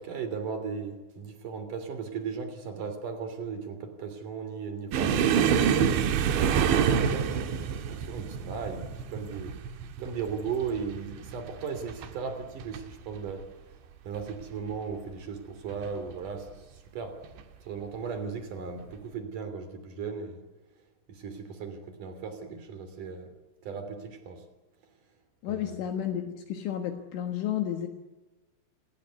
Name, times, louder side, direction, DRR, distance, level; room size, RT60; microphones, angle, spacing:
voice 1, 0.0-9.5 10.0-13.5 14.0-17.2 17.6-20.4 21.1-23.3 23.6-24.4 25.5-25.8, right 5 dB, 45° right, 9 dB, 4.1 m, -37 dB
sound 1, 4.9-12.1 12.4-12.8 13.1-13.3 14.2-14.7 15.7-15.9 17.2-17.4, right 7 dB, 70° right, 3.7 m, -27 dB
voice 2, 25.4-27.9, left 10 dB, 70° left, 5 dB, 3.8 m, -32 dB
28.5 x 18.0 x 9.5 m, 1.2 s
omnidirectional pair, 6.0 m